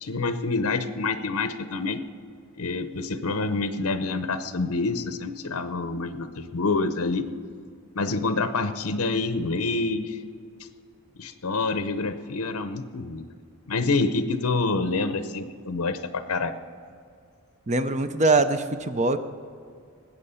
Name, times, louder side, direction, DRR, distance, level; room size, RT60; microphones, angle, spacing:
voice 1, 0.0-2.0 2.5-7.3 8.0-10.2 11.2-13.2 13.7-16.5, left 3 dB, 75° left, 10 dB, 0.7 m, -27 dB
voice 2, 17.7-19.2, right 3 dB, 30° right, 10 dB, 0.6 m, -22 dB
19.5 x 8.1 x 5.6 m, 2.3 s
head